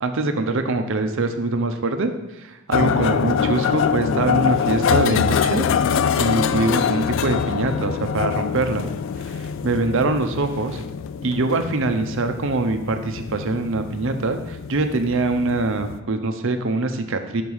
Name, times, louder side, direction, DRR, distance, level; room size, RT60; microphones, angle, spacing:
voice 1, 0.0-5.7 6.2-8.9 9.2-10.8 11.2-17.4, right 3 dB, 65° right, 7 dB, 0.7 m, -23 dB
sound 1, 2.7-16.0, left 7 dB, 60° left, 0.3 m, -24 dB
5.9 x 4.8 x 5.5 m, 1.1 s
head